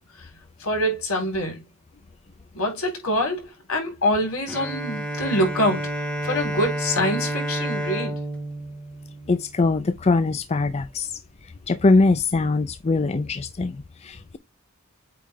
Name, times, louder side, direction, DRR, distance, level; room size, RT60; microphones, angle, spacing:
voice 1, 0.6-1.6 2.5-5.8 6.2-8.2, equal, 80° left, 3.7 m, -25 dB
Bowed string instrument, 4.5-10.0, right 1 dB, 5° left, 1.4 m, -30 dB
voice 2, 9.3-11.2 11.7-14.4, left 3 dB, 30° left, 0.5 m, -22 dB
8.4 x 3.8 x 3.2 m
head